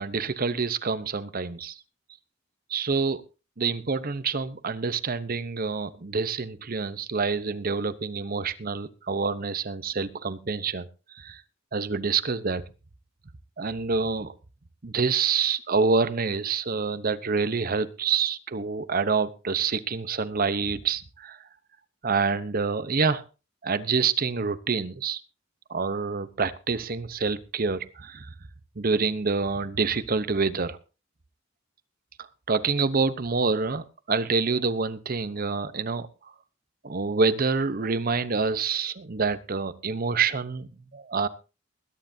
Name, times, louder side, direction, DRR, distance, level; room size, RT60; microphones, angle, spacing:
voice 1, 0.0-1.8 2.7-3.2 3.6-11.4 11.7-12.6 13.6-14.3 14.8-21.5 22.0-23.2 23.6-25.2 25.7-28.3 28.8-30.8 32.2-36.3 36.8-41.3, right 4 dB, 50° right, 14 dB, 0.9 m, -27 dB
20.5 x 11.5 x 2.7 m, 0.31 s
head